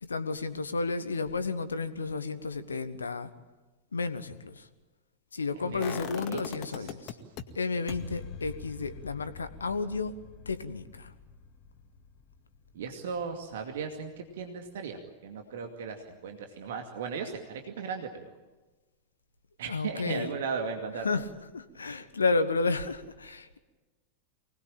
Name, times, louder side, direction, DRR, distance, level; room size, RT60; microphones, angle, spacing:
voice 1, 0.0-3.3 3.9-4.7 5.3-7.2 7.5-10.1 10.4-11.1 19.7-20.3 21.0-21.3 21.5-23.6, left 3 dB, 75° left, 12 dB, 1.3 m, -32 dB
voice 2, 5.6-6.9 12.7-18.3 19.6-21.2, right 5 dB, 60° right, 5 dB, 2.3 m, -37 dB
sound 1, 5.8-7.4 7.9-13.7 14.0-14.1, left 7 dB, 40° left, 2.1 m, -43 dB
24.5 x 19.5 x 9.0 m, 1.2 s
figure-of-eight pair, 90°, 0 cm